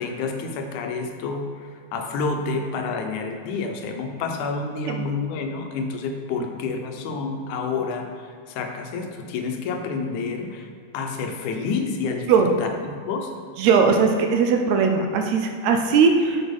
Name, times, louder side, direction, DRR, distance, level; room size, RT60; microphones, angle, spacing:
voice 1, 0.0-1.5 1.9-10.7 10.9-12.3 12.6-13.3, left 4 dB, 85° left, 4 dB, 2.3 m, -29 dB
voice 2, 13.6-16.4, right 5 dB, 75° right, 4 dB, 1.8 m, -19 dB
6.2 x 6.0 x 5.4 m, 2.1 s
omnidirectional pair, 3.4 m